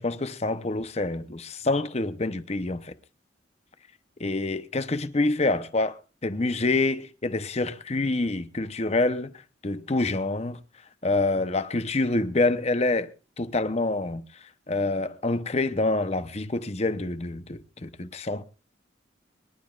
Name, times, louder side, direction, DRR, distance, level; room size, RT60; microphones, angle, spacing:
voice 1, 0.0-2.9 4.2-9.3 9.6-10.6 11.0-13.1 13.4-14.2 14.7-18.4, left 2 dB, 35° left, 0.8 m, -26 dB
24.0 x 11.5 x 2.4 m
head